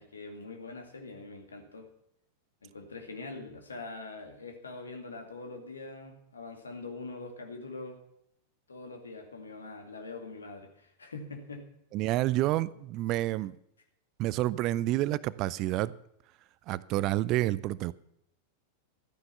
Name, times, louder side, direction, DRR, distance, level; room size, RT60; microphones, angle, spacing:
voice 1, 0.0-1.9 2.6-8.0 8.7-11.7, left 3 dB, 75° left, 2.3 m, -43 dB
voice 2, 11.9-13.5 14.2-15.9 16.7-17.9, right 16 dB, 40° right, 0.5 m, -29 dB
13.5 x 9.7 x 6.8 m
figure-of-eight pair, 90°, 0 cm